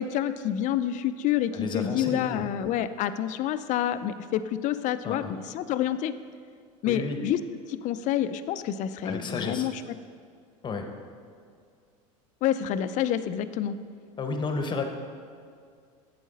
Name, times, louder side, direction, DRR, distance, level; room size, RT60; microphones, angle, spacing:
voice 1, 0.0-6.1 6.8-7.4 7.7-9.8 12.4-13.8, left 11 dB, 45° left, 12 dB, 0.4 m, -28 dB
voice 2, 1.5-2.5 5.0-5.3 6.9-7.2 9.0-9.7 10.6-10.9 14.2-14.8, left 4 dB, 25° left, 5 dB, 1.0 m, -32 dB
8.5 x 7.2 x 4.1 m, 2.2 s
supercardioid pair, 100°, 17 cm